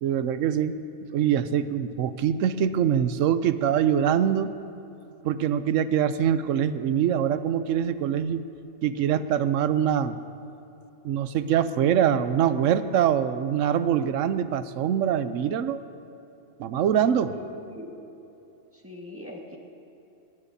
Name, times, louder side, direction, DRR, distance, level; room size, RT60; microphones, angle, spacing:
voice 1, 0.0-0.8 1.1-4.5 5.2-8.4 8.8-10.2 11.0-15.8 16.6-17.3, right 9 dB, 70° right, 12 dB, 0.9 m, -24 dB
voice 2, 17.2-17.9 18.7-19.6, left 1 dB, 10° right, -1 dB, 1.6 m, -41 dB
20.0 x 18.0 x 2.8 m, 2.8 s
omnidirectional pair, 1.5 m